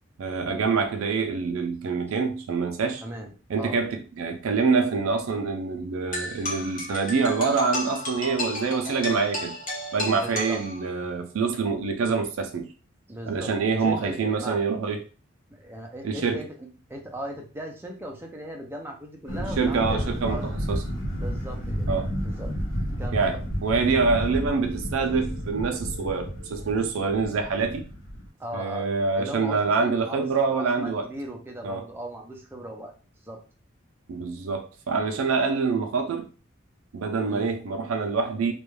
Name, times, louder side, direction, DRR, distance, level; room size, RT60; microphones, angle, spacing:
voice 1, 0.2-3.0 3.5-9.5 9.9-12.7 13.3-15.0 16.0-16.4 19.3-20.8 21.9-22.1 23.1-27.8 28.5-31.1 31.6-31.9 34.1-36.3 36.9-38.5, right 4 dB, 80° right, 0.4 m, -26 dB
voice 2, 3.0-3.3 3.6-3.8 10.1-10.6 13.1-14.6 15.5-16.5 16.9-20.0 20.3-20.4 21.2-21.9 22.2-22.5 23.0-23.4 28.4-28.9 29.2-32.9 33.3-33.4 37.3-37.5, right 1 dB, 10° right, 0.4 m, -38 dB
sound 1, 6.1-11.1, left 1 dB, 40° left, 0.8 m, -33 dB
sound 2, 19.3-28.3, equal, 70° left, 0.7 m, -31 dB
2.3 x 2.1 x 3.1 m
head